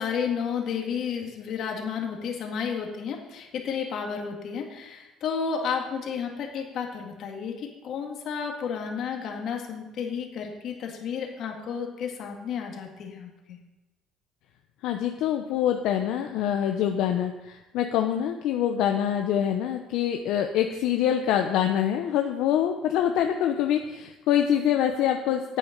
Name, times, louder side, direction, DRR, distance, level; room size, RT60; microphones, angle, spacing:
voice 1, 0.0-13.6, left 6 dB, 55° left, 2 dB, 2.0 m, -32 dB
voice 2, 14.8-25.6, left 10 dB, 70° left, 4 dB, 0.7 m, -25 dB
9.5 x 8.6 x 5.2 m, 1.1 s
cardioid pair, 140°, 0 cm